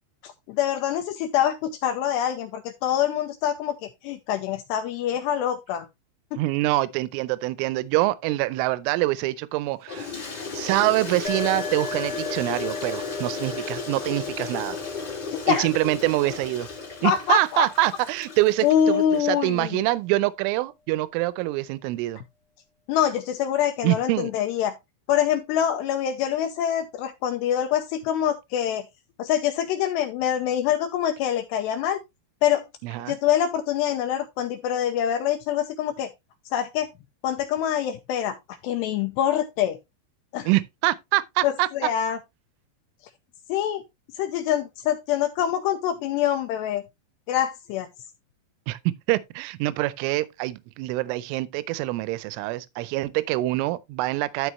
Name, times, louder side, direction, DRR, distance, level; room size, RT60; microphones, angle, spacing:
voice 1, 0.2-5.9 6.3-6.4 15.3-15.7 17.0-17.7 18.6-19.8 22.9-24.8 25.1-28.9 29.2-32.0 32.4-32.6 33.1-36.1 36.5-36.9 37.2-38.4 38.6-39.8 40.3-40.5 41.4-42.2 43.5-43.8 44.2-46.8 47.3-47.9, left 10 dB, 80° left, 2.5 m, -25 dB
voice 2, 6.4-10.1 10.5-14.8 15.5-16.7 17.0-22.2 23.8-24.3 32.8-33.2 40.5-41.7 48.7-54.5, right 18 dB, 85° right, 3.2 m, -25 dB
Toilet flush, 9.9-19.2, left 5 dB, 30° left, 2.3 m, -35 dB
sound 1, 11.2-18.7, left 4 dB, 60° left, 1.0 m, -38 dB
12.5 x 5.3 x 3.1 m
omnidirectional pair, 5.6 m